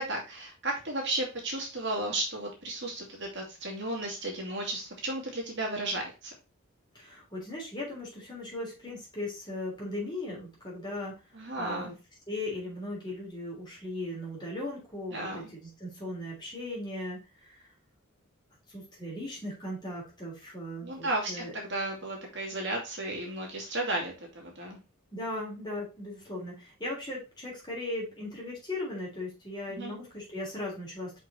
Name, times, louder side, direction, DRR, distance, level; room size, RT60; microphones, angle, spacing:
voice 1, 0.0-6.3 11.3-11.9 15.1-15.5 20.8-24.8 29.7-29.9, right 2 dB, 55° right, 0 dB, 2.4 m, -34 dB
voice 2, 6.9-11.1 11.6-11.9 12.3-17.2 17.5-17.7 18.7-21.5 25.1-31.2, left 1 dB, 20° left, -4 dB, 3.4 m, -38 dB
5.7 x 5.1 x 4.1 m, 0.29 s
head